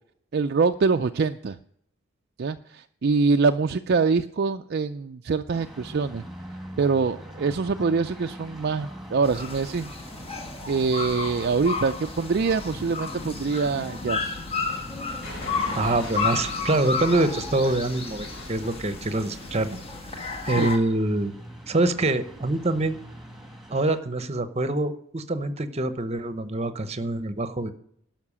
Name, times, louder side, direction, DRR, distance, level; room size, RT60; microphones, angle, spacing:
voice 1, 0.3-1.6 2.4-6.2 6.8-9.9 10.7-14.4 20.4-20.7, right 4 dB, 50° right, 7 dB, 0.4 m, -24 dB
sound 1, 5.5-24.0, equal, ahead, 2.0 m, -45 dB
sound 2, 9.2-20.8, left 4 dB, 30° left, 1.5 m, -32 dB
sound 3, 15.2-20.8, left 1 dB, 65° left, 3.4 m, -42 dB
voice 2, 15.7-19.8 20.5-21.3 21.7-23.0 23.7-27.7, right 2 dB, 30° right, 12 dB, 0.9 m, -25 dB
12.0 x 5.9 x 8.5 m, 0.67 s
head